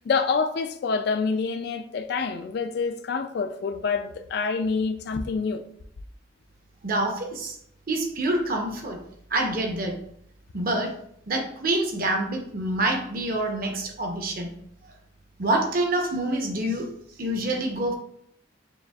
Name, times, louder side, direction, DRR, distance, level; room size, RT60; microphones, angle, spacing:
voice 1, 0.1-5.6, left 4 dB, 55° left, 0.3 m, -27 dB
voice 2, 6.8-7.6 7.9-9.0 9.3-9.9 10.5-10.9 11.3-14.5 15.4-16.9 17.2-17.9, right 1 dB, 45° right, 0.7 m, -26 dB
6.8 x 2.5 x 2.3 m
head